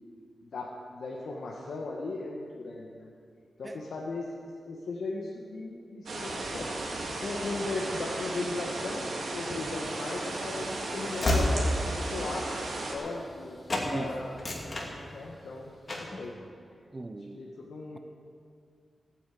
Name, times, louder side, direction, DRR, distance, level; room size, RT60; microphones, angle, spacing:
voice 1, 0.4-3.1 3.6-6.7 7.2-14.3 15.0-16.3 17.4-18.0, left 2 dB, 75° left, -3 dB, 1.7 m, -37 dB
sound 1, 6.1-12.9, right 2 dB, 85° right, 3.2 m, -35 dB
Train / Slam, 9.8-13.4 13.7-13.9 14.3-15.5 15.9-16.2, left 1 dB, 30° left, 2.5 m, -31 dB
voice 2, 13.8-14.2 16.9-17.4, right 2 dB, 20° right, 8 dB, 0.8 m, -38 dB
16.5 x 9.5 x 8.6 m, 2.3 s
wide cardioid pair, 170°, 0 cm